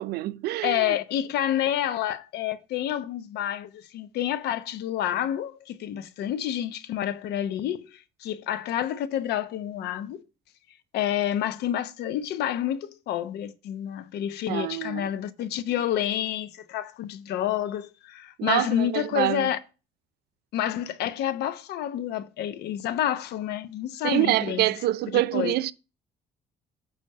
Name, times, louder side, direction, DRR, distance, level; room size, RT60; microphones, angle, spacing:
voice 1, 0.0-1.0 14.5-15.1 18.4-19.5 24.0-25.7, right 15 dB, 70° right, 0.5 m, -26 dB
voice 2, 0.6-10.2 10.9-19.6 20.5-24.7 25.1-25.5, left 11 dB, 75° left, 0.8 m, -29 dB
8.5 x 3.4 x 6.7 m
cardioid pair, 110°, 17 cm